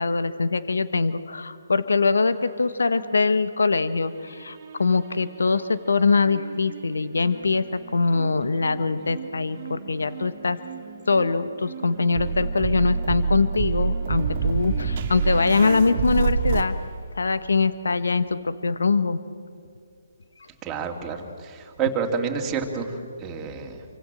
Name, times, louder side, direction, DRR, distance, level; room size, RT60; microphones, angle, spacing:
voice 1, 0.0-7.6 7.9-10.6 11.1-16.8 17.2-19.2, left 4 dB, 75° left, 12 dB, 1.3 m, -23 dB
sound 1, 2.2-3.7 4.1-5.4 6.2-16.6, right 5 dB, 40° right, 2.4 m, -29 dB
sound 2, 11.6-20.1 20.5-20.9, left 4 dB, 50° left, 7.2 m, -47 dB
voice 2, 20.6-23.8, right 6 dB, 15° right, 1 dB, 2.9 m, -29 dB
28.0 x 24.5 x 7.7 m, 2.3 s
figure-of-eight pair, 145°, 0 cm